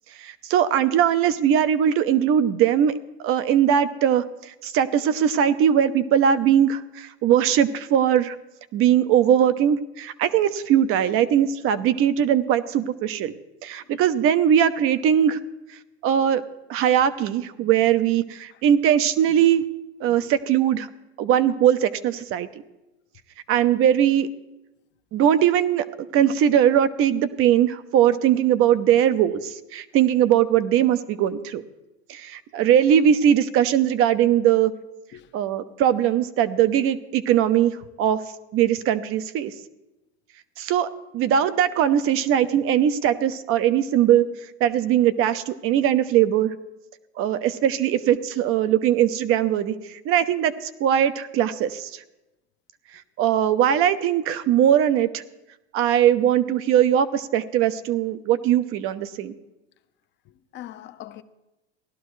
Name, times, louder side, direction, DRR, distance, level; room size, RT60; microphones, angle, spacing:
voice 1, 0.2-2.9 3.2-8.4 8.7-13.3 13.6-15.4 16.0-16.4 16.7-19.6 20.0-20.9 21.2-22.5 23.5-24.3 25.1-31.6 32.1-34.7 35.3-38.2 38.5-39.5 40.6-40.9 41.1-44.3 44.6-46.5 47.2-52.0 53.2-55.2 55.7-59.3, right 10 dB, 40° right, 0.7 m, -20 dB
voice 2, 60.3-61.2, left 13 dB, 35° left, 0.7 m, -41 dB
17.0 x 11.5 x 3.2 m
hypercardioid pair, 110°, 34 cm